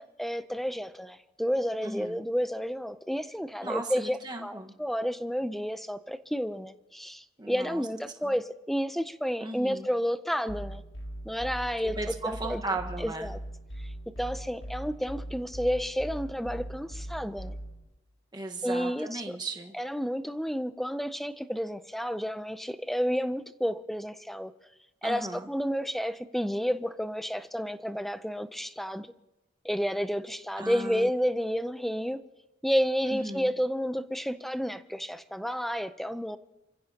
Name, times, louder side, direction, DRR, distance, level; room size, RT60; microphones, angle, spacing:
voice 1, 0.0-10.8 11.2-12.6 13.0-13.4 14.2-17.6 18.6-19.4 19.7-24.5 25.0-29.1 29.6-32.2 32.6-36.4, equal, ahead, 12 dB, 0.5 m, -31 dB
voice 2, 1.8-2.2 3.6-4.7 7.4-7.8 8.2-8.3 9.4-9.9 12.0-13.3 18.3-19.7 25.0-25.4 30.6-31.1 33.1-33.5, right 2 dB, 20° right, 2 dB, 1.4 m, -36 dB
sound 1, 10.5-17.8, right 1 dB, 70° left, 4.4 m, -40 dB
28.0 x 15.5 x 2.9 m, 0.98 s
head